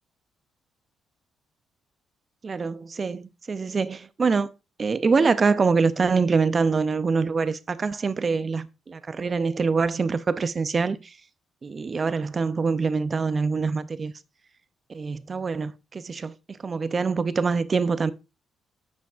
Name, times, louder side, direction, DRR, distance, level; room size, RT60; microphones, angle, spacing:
voice 1, 2.4-4.5 4.8-11.2 11.6-14.1 14.9-18.1, right 4 dB, 35° right, 0.5 m, -25 dB
9.0 x 5.1 x 2.3 m
cardioid pair, 90°, 0 cm